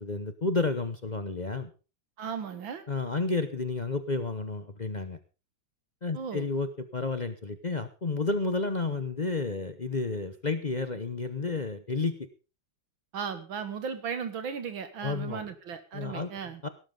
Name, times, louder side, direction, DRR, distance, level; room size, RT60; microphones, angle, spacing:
voice 1, 0.0-1.7 2.9-5.2 6.0-12.3 15.0-15.4 15.9-16.3 16.6-16.7, left 3 dB, 45° left, 9 dB, 0.5 m, -31 dB
voice 2, 2.2-2.9 6.1-6.5 13.1-16.6, right 6 dB, 70° right, 10 dB, 2.1 m, -36 dB
17.5 x 12.5 x 3.8 m, 0.32 s
omnidirectional pair, 2.2 m